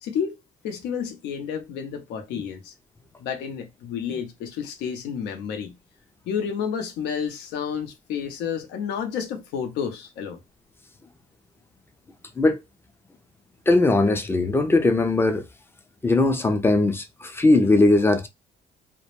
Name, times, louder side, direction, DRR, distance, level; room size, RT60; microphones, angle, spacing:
voice 1, 0.0-0.4 0.6-2.7 3.2-5.8 6.3-10.4, left 7 dB, 85° left, 0.6 m, -30 dB
voice 2, 13.7-15.4 16.0-18.3, left 2 dB, 15° left, 0.4 m, -19 dB
2.2 x 2.0 x 2.9 m
cardioid pair, 110°, 17 cm